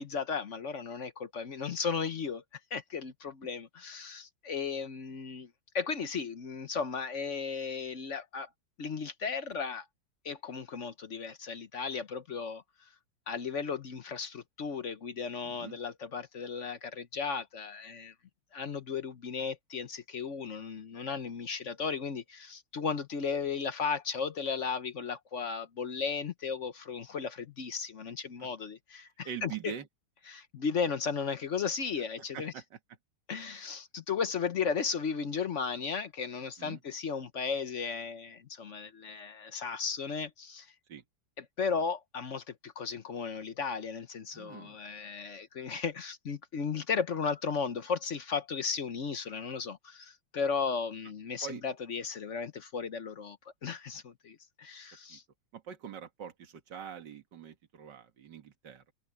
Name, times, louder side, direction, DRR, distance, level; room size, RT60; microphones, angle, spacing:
voice 1, 0.0-2.4 2.7-5.5 5.7-8.5 8.8-9.9 10.2-12.6 13.3-18.1 18.5-29.7 30.3-32.5 33.3-40.7 41.4-53.4 53.6-55.2, left 5 dB, 50° left, 1.0 m, -35 dB
voice 2, 15.4-15.8 28.4-28.5 29.2-29.9 32.3-32.8 36.6-36.8 40.9-41.0 44.3-44.8 51.4-51.6 55.1-55.2 55.5-58.9, right 8 dB, 60° right, 2.3 m, -44 dB
omnidirectional pair, 2.2 m